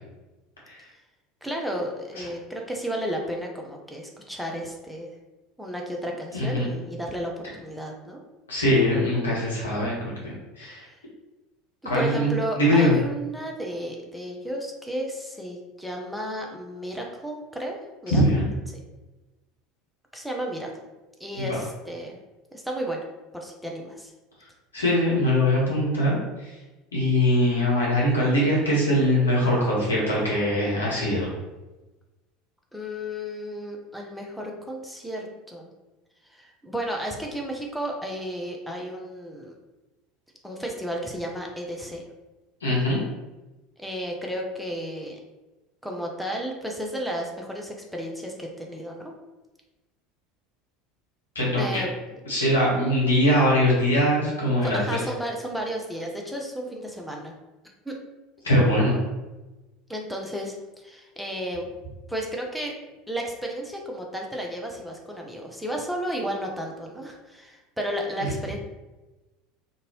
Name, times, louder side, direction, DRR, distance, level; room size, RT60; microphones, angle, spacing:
voice 1, 1.4-5.1 5.6-8.2 10.9-11.0 11.8-17.8 18.0-18.2 20.1-20.7 21.2-22.2 22.5-23.1 23.3-24.1 32.7-35.7 36.3-39.5 40.4-42.0 43.8-45.2 45.8-49.1 51.6-51.9 54.6-57.3 57.9-58.0 59.9-60.6 60.8-61.7 62.1-62.8 63.1-68.6, equal, ahead, 0 dB, 0.5 m, -33 dB
voice 2, 6.3-6.7 8.5-10.9 11.8-12.9 18.1-18.4 21.4-21.5 24.7-26.5 26.9-31.3 42.6-43.0 51.3-51.8 52.3-55.0 58.4-59.0, left 1 dB, 75° left, -6 dB, 1.1 m, -22 dB
2.6 x 2.6 x 3.0 m, 1.1 s
figure-of-eight pair, 70°, 0 cm